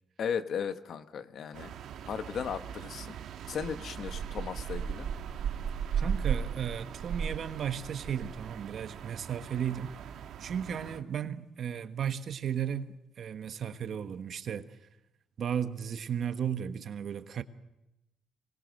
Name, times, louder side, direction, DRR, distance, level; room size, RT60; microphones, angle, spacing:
voice 1, 0.2-1.7 2.1-3.2 3.5-5.1, left 7 dB, 65° left, 1.3 m, -36 dB
sound 1, 1.5-11.0, right 7 dB, 75° right, 1.3 m, -37 dB
voice 2, 5.9-9.9 10.4-14.7 15.4-17.4, right 8 dB, 60° right, 1.3 m, -35 dB
24.5 x 20.5 x 6.5 m
cardioid pair, 90°, 0 cm